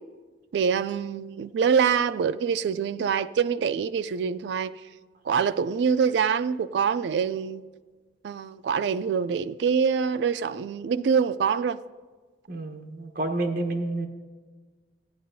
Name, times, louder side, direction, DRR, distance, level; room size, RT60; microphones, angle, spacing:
voice 1, 0.5-4.8 5.2-7.6 8.2-11.8, right 6 dB, 70° right, 0.3 m, -25 dB
voice 2, 12.5-14.1, right 2 dB, 50° right, 1.0 m, -29 dB
15.0 x 10.0 x 2.7 m
head